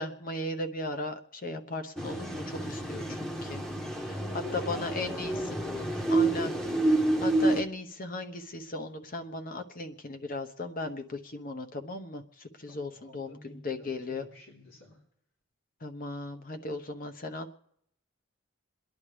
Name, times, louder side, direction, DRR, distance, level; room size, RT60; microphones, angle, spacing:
voice 1, 0.0-3.6 4.1-4.2 4.5-5.3 6.1-6.5 7.2-14.3 15.8-17.5, left 2 dB, 45° left, 7 dB, 1.0 m, -37 dB
sound 1, 2.0-7.6, right 2 dB, ahead, 1.0 m, -29 dB
voice 2, 4.0-6.5 12.7-15.0, left 3 dB, 85° left, -5 dB, 4.0 m, -48 dB
28.5 x 10.5 x 3.4 m, 0.73 s
head